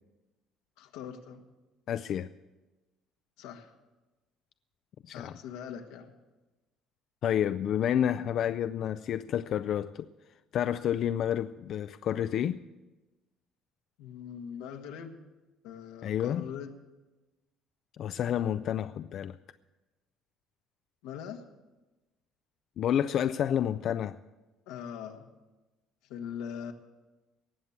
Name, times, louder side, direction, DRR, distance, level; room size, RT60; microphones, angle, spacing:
voice 1, 0.8-1.4 3.4-3.7 5.1-6.1 14.0-15.2 15.6-16.7 21.0-21.4 24.7-25.3 26.1-26.7, left 8 dB, 90° left, 1.6 m, -41 dB
voice 2, 1.9-2.3 5.0-5.4 7.2-12.6 16.0-16.5 18.0-19.4 22.8-24.2, left 10 dB, 55° left, 0.4 m, -30 dB
18.5 x 7.3 x 8.1 m
cardioid pair, 125°, 0 cm